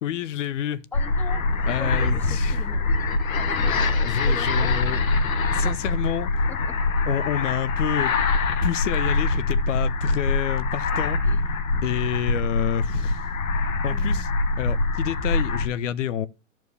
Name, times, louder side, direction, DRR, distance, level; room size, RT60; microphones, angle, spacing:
voice 1, 0.0-0.8 1.7-2.6 4.0-5.0 5.5-6.3 7.1-8.1 8.6-11.2 11.8-13.2 13.8-14.3 14.6-16.3, left 11 dB, 65° left, 0.9 m, -28 dB
sound 1, 0.9-15.7, left 3 dB, 85° left, 1.4 m, -24 dB
voice 2, 0.9-2.8 3.3-4.8 5.6-5.8 6.5-6.8 11.3-11.4 13.9-14.3, left 2 dB, 5° left, 0.6 m, -40 dB
11.0 x 4.6 x 7.0 m
hypercardioid pair, 120°, 40 cm